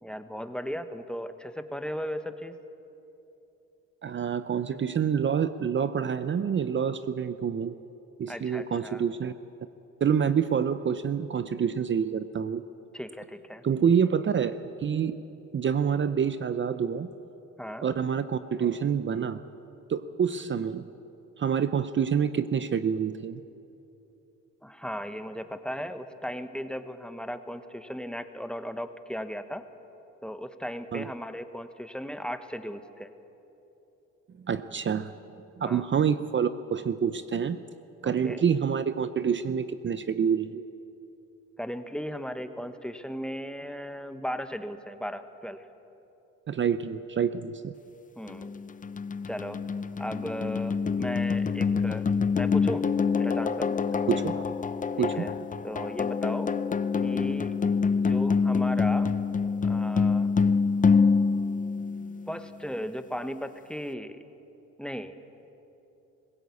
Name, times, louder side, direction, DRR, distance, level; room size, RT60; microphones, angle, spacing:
voice 1, 0.0-2.6 8.3-9.0 12.9-13.6 17.6-17.9 24.6-29.6 30.2-33.1 35.6-35.9 38.0-38.4 41.6-45.6 48.2-48.5 49.3-49.6 50.0-52.1 52.3-52.8 53.2-53.8 55.0-55.4 55.6-56.5 57.0-57.5 57.9-59.2 59.6-60.3 62.3-64.2 64.8-65.1, equal, 5° left, 9 dB, 1.1 m, -36 dB
voice 2, 4.0-7.7 8.2-9.3 10.0-12.6 13.6-15.2 15.5-17.1 17.8-19.4 19.9-20.9 21.4-23.4 30.9-31.1 34.5-35.1 35.6-37.6 38.0-40.6 46.5-47.7 54.1-54.4 55.0-55.3, right 7 dB, 40° right, 12 dB, 0.7 m, -27 dB
sound 1, 48.3-62.5, left 5 dB, 25° left, 0.6 m, -26 dB
21.0 x 17.0 x 8.4 m, 2.9 s
cardioid pair, 90°, 30 cm